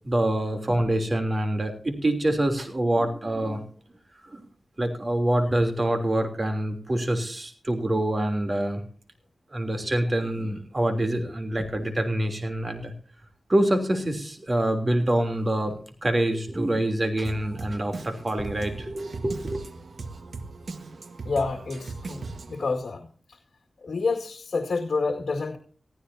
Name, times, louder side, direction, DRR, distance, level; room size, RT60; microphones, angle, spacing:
voice 1, 0.0-3.6 4.2-4.5 4.8-8.8 9.5-12.9 13.5-19.6, right 1 dB, 35° right, 6 dB, 3.2 m, -26 dB
Drum kit, 17.2-22.7, right 3 dB, 65° right, 1.5 m, -38 dB
voice 2, 21.3-23.1 23.8-25.6, left 4 dB, 65° left, 2 dB, 2.1 m, -28 dB
20.0 x 14.5 x 2.8 m, 0.43 s
cardioid pair, 65°, 0 cm